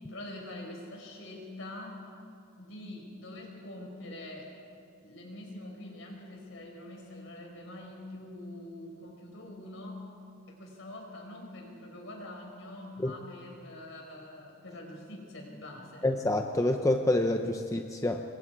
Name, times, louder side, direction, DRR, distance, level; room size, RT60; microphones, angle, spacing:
voice 1, 0.0-2.0 2.6-4.5 5.0-10.0 10.5-16.1, left 1 dB, 60° left, 1 dB, 5.3 m, -44 dB
voice 2, 16.0-18.2, left 1 dB, 15° left, 4 dB, 0.7 m, -27 dB
27.0 x 23.5 x 4.8 m, 2.4 s
head